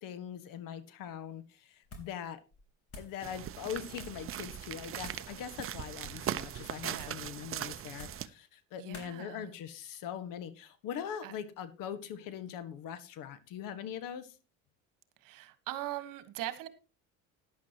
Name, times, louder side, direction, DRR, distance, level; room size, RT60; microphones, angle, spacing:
voice 1, 0.0-2.4 3.0-14.4, left 9 dB, 65° left, 12 dB, 1.7 m, -42 dB
sound 1, 1.8-2.2 2.5-3.2 3.9-4.3 5.0-5.3 5.9-6.3 6.9-7.3 7.9-8.3 8.9-9.1, left 2 dB, 40° left, 3.9 m, -50 dB
sound 2, 3.2-8.3, right 11 dB, 35° right, 0.7 m, -40 dB
voice 2, 6.9-7.2 8.8-9.5 11.2-11.3 15.2-16.7, right 14 dB, 60° right, 13 dB, 1.5 m, -41 dB
14.0 x 10.5 x 2.9 m, 0.30 s
supercardioid pair, 100°, 36 cm